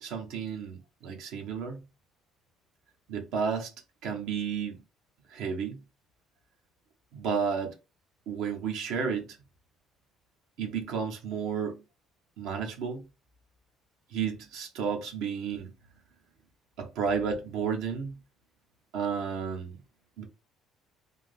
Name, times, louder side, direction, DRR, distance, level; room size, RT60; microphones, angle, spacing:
voice 1, 0.0-1.8 3.1-3.7 4.0-4.8 5.3-5.8 7.1-7.8 8.3-9.4 10.6-11.8 12.4-13.0 14.1-15.7 16.8-18.2 18.9-19.8 20.2-20.3, right 6 dB, 70° right, 1.1 m, -32 dB
3.6 x 2.8 x 3.6 m
hypercardioid pair, 60°, 0 cm